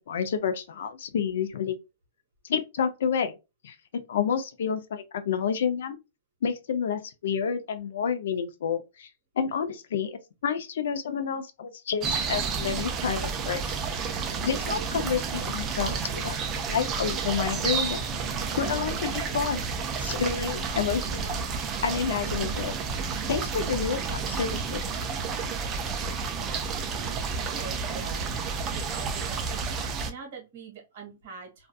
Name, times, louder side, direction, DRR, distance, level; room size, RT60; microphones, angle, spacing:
voice 1, 0.1-1.8 2.4-3.3 3.6-6.0 6.4-9.1 9.4-13.7 14.4-16.4 16.7-18.0 18.6-19.6 20.0-22.7 23.3-24.9, left 7 dB, 70° left, 0.4 m, -29 dB
sound 1, 12.0-30.1, right 5 dB, 20° right, 0.3 m, -31 dB
voice 2, 25.8-26.4 27.0-31.7, right 5 dB, 50° right, 1.3 m, -45 dB
2.5 x 2.3 x 2.3 m
hypercardioid pair, 165°, 0 cm